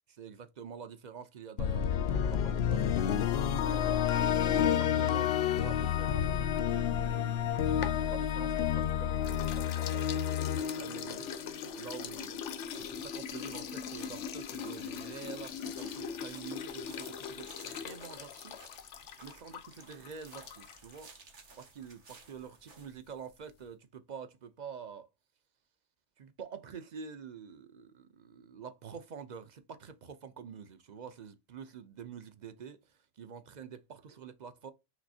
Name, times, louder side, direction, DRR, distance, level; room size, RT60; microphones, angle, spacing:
voice 1, 0.1-4.0 4.4-11.3 11.7-18.6 19.2-21.1 21.6-25.1 26.2-34.7, right 6 dB, 50° right, 0.6 m, -47 dB
sound 1, 1.6-11.8, left 9 dB, 70° left, 0.8 m, -30 dB
sound 2, 7.3-8.8 9.2-21.0, left 7 dB, 90° left, 1.0 m, -41 dB
sound 3, 12.7-22.9, right 4 dB, 75° right, 1.7 m, -58 dB
6.0 x 3.1 x 2.7 m
omnidirectional pair, 1.2 m